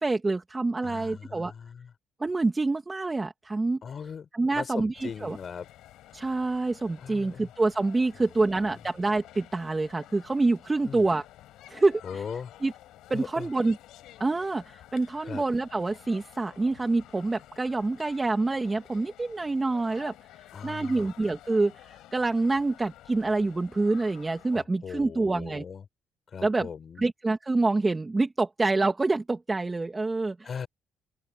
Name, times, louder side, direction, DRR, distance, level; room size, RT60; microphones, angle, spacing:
voice 1, 0.0-1.5 2.2-3.8 4.3-5.4 6.1-11.2 11.7-12.2 12.6-12.7 13.1-13.8 14.2-20.1 20.6-25.6 26.4-26.7 27.0-30.5, right 3 dB, 20° right, 2.2 m, -27 dB
voice 2, 0.8-1.9 3.8-5.7 7.0-7.5 8.6-8.8 10.8-11.1 12.0-12.5 13.1-13.5 15.2-15.4 20.5-21.1 24.5-25.8 26.3-27.0 30.4-30.7, left 6 dB, 50° left, 6.2 m, -39 dB
sound 1, 4.9-24.6, left 14 dB, 90° left, 6.6 m, -52 dB
open air
cardioid pair, 90°, 0 cm